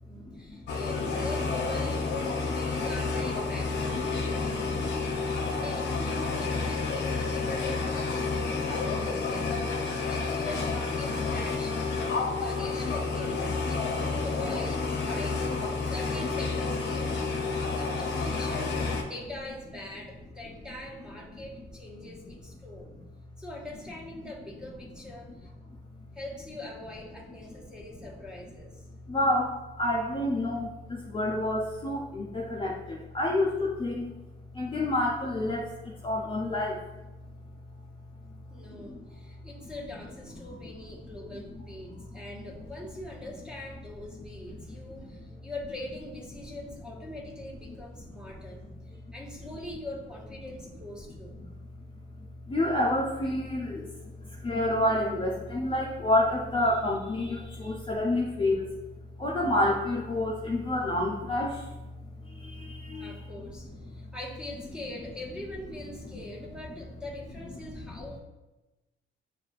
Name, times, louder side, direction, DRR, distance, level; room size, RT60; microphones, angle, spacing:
voice 1, 0.0-5.2 5.6-9.6 10.1-11.8 12.4-15.5 15.9-17.2 17.8-22.9 23.4-25.5 26.1-28.8 38.5-51.4 57.8-57.9 63.0-68.2, left 1 dB, 5° right, -3 dB, 1.2 m, -43 dB
sound 1, 0.7-19.0, left 4 dB, 60° left, 0.7 m, -30 dB
voice 2, 29.1-34.1 34.5-36.8 38.8-38.9 52.5-53.9 54.2-58.7 59.2-61.7 62.2-63.2 67.8-67.9, left 1 dB, 25° left, -3 dB, 0.6 m, -28 dB
6.8 x 2.5 x 2.4 m, 1.1 s
cardioid pair, 90°, 20 cm